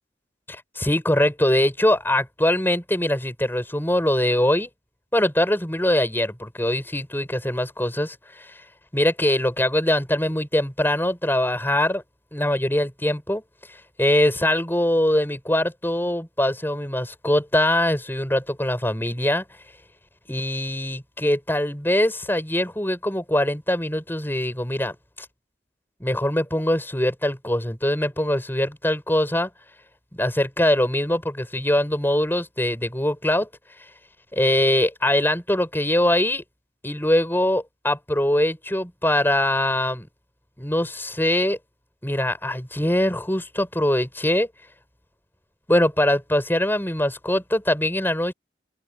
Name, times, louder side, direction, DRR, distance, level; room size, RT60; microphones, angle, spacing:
voice 1, 0.5-4.7 5.1-8.4 8.9-12.0 12.3-13.4 14.0-19.4 20.3-24.9 26.0-29.5 30.2-33.5 34.3-36.4 36.8-40.1 40.6-41.6 42.0-44.5 45.7-48.3, left 1 dB, 10° left, 7.8 m, -22 dB
open air
head